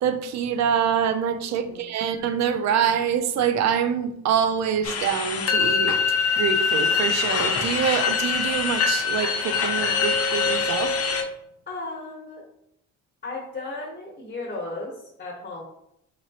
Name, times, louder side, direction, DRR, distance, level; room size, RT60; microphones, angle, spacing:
voice 1, 0.0-11.0, right 8 dB, 60° right, 10 dB, 0.5 m, -25 dB
voice 2, 1.5-1.9 11.7-12.5 13.2-15.6, left 2 dB, 30° left, -2 dB, 0.9 m, -35 dB
sound 1, 4.8-11.2, left 6 dB, 55° left, 0.6 m, -24 dB
3.8 x 3.0 x 2.7 m, 0.77 s
cardioid pair, 90°, 30 cm